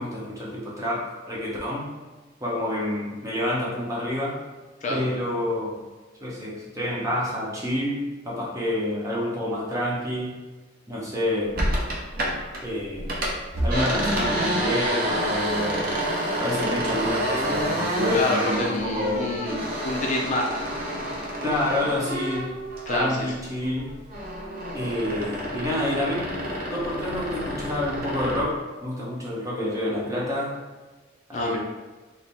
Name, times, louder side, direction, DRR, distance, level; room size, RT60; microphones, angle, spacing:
voice 1, 0.0-1.9 2.4-4.4 4.9-5.8 6.2-10.4 10.9-11.5 12.6-13.1 13.6-16.0 16.3-19.3 21.4-22.6 22.9-23.9 24.7-30.6 31.3-31.6, left 1 dB, 15° right, -5 dB, 0.8 m, -28 dB
sound 1, 11.6-12.6 12.9-23.3 23.6-28.5, equal, 50° right, 0.7 m, -28 dB
voice 2, 18.1-20.6 21.3-21.4 22.9-23.3 31.3-31.6, left 1 dB, 40° left, -1 dB, 0.5 m, -28 dB
4.2 x 2.1 x 3.4 m, 1.3 s
head